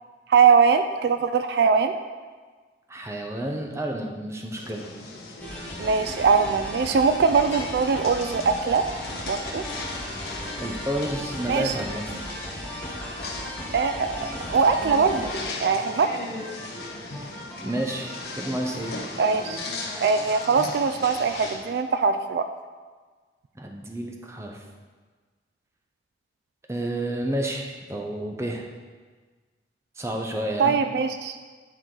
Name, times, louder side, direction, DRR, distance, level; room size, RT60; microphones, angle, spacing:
voice 1, 0.3-1.9 5.8-8.9 9.2-9.6 11.5-11.7 13.7-15.3 15.6-16.1 19.2-19.6 20.0-22.5 30.6-31.3, right 5 dB, 65° right, 8 dB, 0.3 m, -21 dB
voice 2, 2.9-4.9 10.6-12.0 17.6-18.1 18.4-19.0 23.5-24.6 26.7-28.7 30.0-30.7, right 1 dB, 15° right, 1 dB, 0.7 m, -30 dB
sound 1, 4.5-21.6, left 2 dB, 60° left, 1.1 m, -37 dB
sound 2, 5.4-20.5, equal, 10° left, 1.2 m, -38 dB
10.0 x 4.6 x 3.8 m, 1.4 s
head